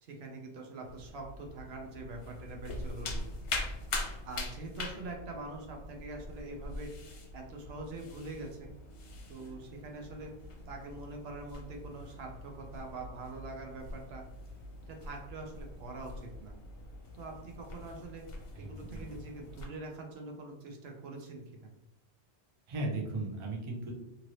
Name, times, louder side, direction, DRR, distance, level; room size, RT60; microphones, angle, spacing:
voice 1, 0.0-3.3 4.2-6.9 7.3-8.7 9.3-10.3 10.7-14.2 14.8-16.6 17.1-18.3 18.6-21.7, right 2 dB, 70° right, 1 dB, 0.8 m, -44 dB
sound 1, 0.8-19.7, left 2 dB, 65° left, 0.9 m, -43 dB
voice 2, 18.5-19.0 22.7-23.9, right 2 dB, 35° right, -1 dB, 0.5 m, -36 dB
2.7 x 2.6 x 3.0 m, 0.90 s
omnidirectional pair, 1.1 m